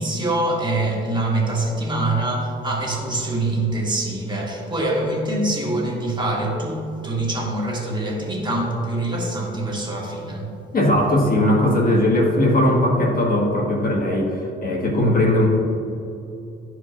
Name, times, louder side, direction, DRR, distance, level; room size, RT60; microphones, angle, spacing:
voice 1, 0.0-10.6, right 2 dB, 20° right, 1.5 m, -24 dB
voice 2, 10.7-15.5, left 1 dB, 45° left, 1.6 m, -19 dB
12.5 x 4.8 x 2.6 m
cardioid pair, 90°, 20 cm